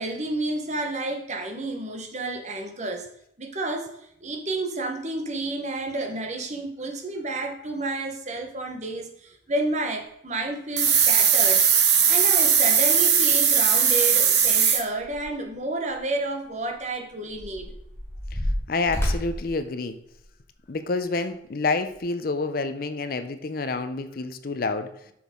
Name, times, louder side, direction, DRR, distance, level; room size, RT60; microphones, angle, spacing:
voice 1, 0.0-3.1 3.4-11.7 12.1-17.7, right 2 dB, 40° right, 3 dB, 1.1 m, -30 dB
sound 1, 10.3-10.4 10.8-11.2 12.9-13.0 13.3-13.4 13.7-15.5 15.9-16.0 16.7-20.4 21.0-21.3 21.9-22.0, equal, 15° left, 1.6 m, -32 dB
sound 2, 10.8-14.8, right 7 dB, 60° right, 1.1 m, -19 dB
voice 2, 18.7-20.0 20.7-24.9, left 3 dB, 50° left, 10 dB, 0.5 m, -28 dB
7.0 x 6.1 x 3.7 m, 0.76 s
head